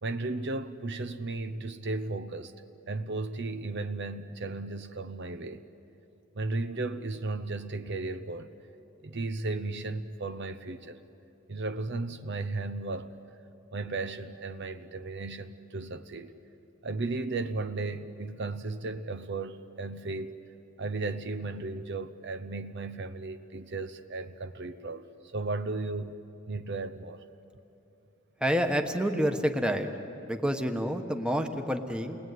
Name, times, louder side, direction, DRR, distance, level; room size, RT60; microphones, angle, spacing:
voice 1, 0.0-2.5 2.9-5.6 6.3-8.5 9.0-11.0 11.5-13.1 13.7-16.3 16.8-20.3 20.8-25.0 25.3-26.1 26.5-27.2, right 3 dB, 60° right, 9 dB, 0.9 m, -35 dB
voice 2, 28.4-29.9 30.2-32.2, equal, 5° right, 5 dB, 1.3 m, -28 dB
29.0 x 20.0 x 9.4 m, 2.8 s
head